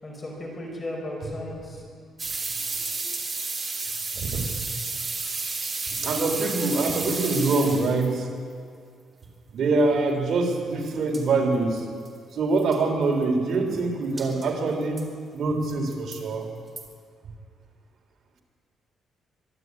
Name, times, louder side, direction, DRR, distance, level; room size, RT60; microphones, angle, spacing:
voice 1, 0.0-1.8, left 1 dB, 20° left, -1 dB, 5.2 m, -35 dB
sound 1, 2.2-8.1 10.9-11.0 11.1-11.2 11.8-11.9 12.0-12.1 12.6-12.8 14.2-14.5 15.0-15.1 15.7-16.2 16.8-16.9, right 3 dB, 25° right, 3.4 m, -31 dB
voice 2, 4.1-4.7 5.9-8.3 9.5-11.9 12.3-16.5, right 3 dB, 60° right, 2 dB, 3.7 m, -25 dB
24.5 x 11.5 x 9.7 m, 2.2 s
cardioid pair, 135°, 0 cm